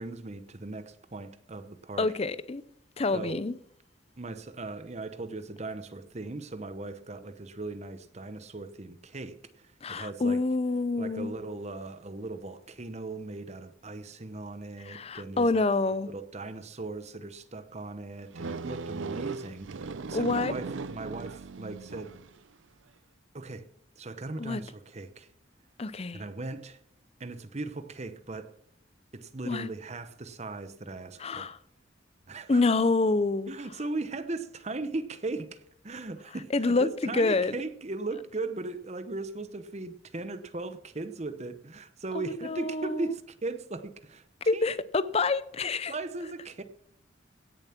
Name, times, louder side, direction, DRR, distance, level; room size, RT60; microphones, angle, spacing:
voice 1, 0.0-2.1 3.1-3.3 4.2-10.4 11.0-15.6 16.1-22.1 23.3-23.6 24.0-25.3 26.1-26.8 27.2-28.5 29.1-31.5 32.3-32.6 33.5-44.2 44.5-44.7 45.6-46.6, right 2 dB, 35° right, 0.9 m, -38 dB
voice 2, 2.0-2.6 3.0-3.5 9.8-11.3 14.8-16.1 20.1-20.5 24.4-24.6 25.8-26.2 29.4-29.7 31.2-31.6 32.5-33.5 36.5-37.5 42.1-43.1 44.5-45.9, left 3 dB, 30° left, 0.6 m, -27 dB
sound 1, 18.3-22.4, right 4 dB, 75° right, 0.6 m, -37 dB
17.5 x 7.2 x 5.9 m
head